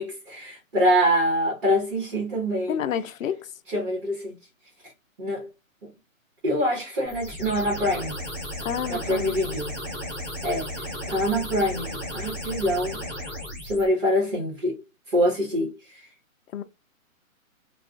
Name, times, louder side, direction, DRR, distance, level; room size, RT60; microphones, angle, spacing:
voice 1, 0.0-2.8 3.7-4.3 5.2-5.5 5.8-5.9 6.4-8.2 8.9-9.7 10.4-10.7 11.1-13.0 13.6-14.8 15.1-16.1, equal, 40° right, 1.1 m, -25 dB
voice 2, 2.7-3.5 8.6-9.4 16.5-16.6, left 8 dB, 70° left, 0.5 m, -29 dB
sound 1, 7.1-13.9, left 1 dB, 10° left, 1.2 m, -34 dB
2.4 x 2.3 x 3.5 m
hypercardioid pair, 170°, 42 cm